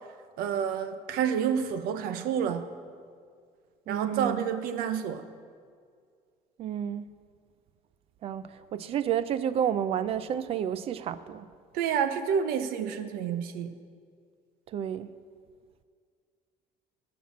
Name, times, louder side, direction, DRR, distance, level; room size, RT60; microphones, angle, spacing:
voice 1, 0.4-2.7 3.9-5.3 11.7-13.8, right 8 dB, 80° right, 10 dB, 0.8 m, -29 dB
voice 2, 3.9-4.4 6.6-7.1 8.2-11.4 14.7-15.1, right 9 dB, 40° right, 14 dB, 0.3 m, -30 dB
11.5 x 6.0 x 7.2 m, 2.1 s
cardioid pair, 165°, 15 cm